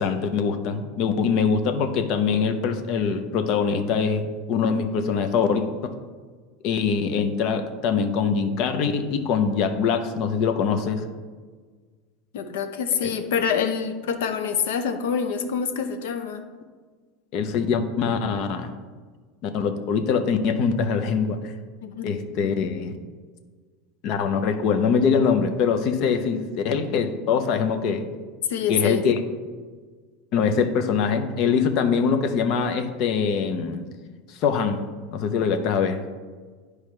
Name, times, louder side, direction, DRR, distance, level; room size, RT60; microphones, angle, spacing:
voice 1, 0.0-5.7 6.6-11.0 17.3-18.7 19.4-21.4 22.0-22.9 24.0-28.0 28.7-29.1 30.3-33.8 34.3-34.8 35.1-36.0, left 6 dB, 40° left, 7 dB, 0.6 m, -23 dB
voice 2, 12.3-16.4 21.8-22.1 28.5-29.0, left 7 dB, 85° left, 8 dB, 0.7 m, -26 dB
10.0 x 4.8 x 3.2 m, 1.5 s
supercardioid pair, 175°, 0 cm